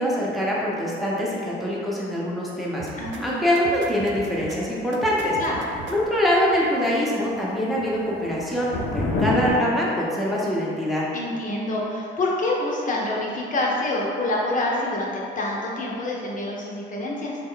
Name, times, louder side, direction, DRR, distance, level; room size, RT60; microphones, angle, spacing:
voice 1, 0.0-5.4 5.9-11.1, equal, ahead, -6 dB, 0.8 m, -24 dB
sound 1, 2.8-3.2 3.6-4.6 4.9-6.0, right 4 dB, 70° right, 0.4 m, -39 dB
voice 2, 3.0-3.4 5.4-5.7 11.1-17.4, left 2 dB, 40° left, -3 dB, 0.7 m, -27 dB
sound 2, 5.3-6.8 7.1-7.5 7.8-9.5, left 3 dB, 80° left, 0.7 m, -29 dB
3.6 x 2.2 x 3.7 m, 2.4 s
cardioid pair, 90°, 20 cm